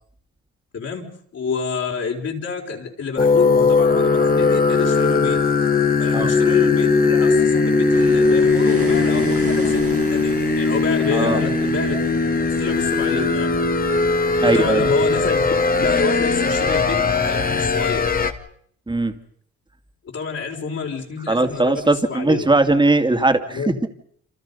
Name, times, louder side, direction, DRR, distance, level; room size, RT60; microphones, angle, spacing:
voice 1, 0.7-5.4 6.0-12.0 12.6-13.5 14.4-15.5 15.8-18.1 20.0-22.5 23.5-23.9, left 5 dB, 55° left, -1 dB, 4.6 m, -28 dB
sound 1, 3.2-18.3, left 4 dB, 30° left, 2.1 m, -19 dB
sound 2, 7.9-13.2, right 6 dB, 50° right, 2.5 m, -34 dB
voice 2, 11.1-11.4 14.4-14.9 18.9-19.1 21.3-23.9, right 2 dB, 15° right, 7 dB, 2.5 m, -19 dB
28.0 x 27.5 x 5.5 m, 0.62 s
cardioid pair, 90°, 30 cm